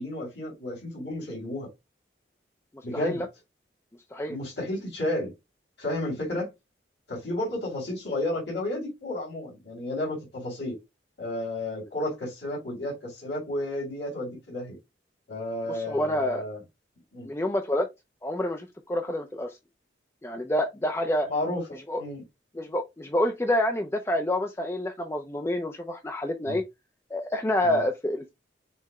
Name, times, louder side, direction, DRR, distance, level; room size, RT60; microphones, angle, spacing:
voice 1, 0.0-1.7 2.8-3.2 4.3-5.3 5.8-6.5 7.1-10.8 11.2-14.8 15.3-16.6 17.1-17.3 21.3-21.7 22.0-22.2 26.5-26.6 27.6-27.8, left 1 dB, 75° left, 2.3 m, -32 dB
voice 2, 15.7-16.4 17.2-17.9 18.2-19.6 20.2-21.3 21.9-22.0 22.5-26.6 27.1-28.3, left 1 dB, 15° left, 0.4 m, -28 dB
5.5 x 2.1 x 4.7 m
head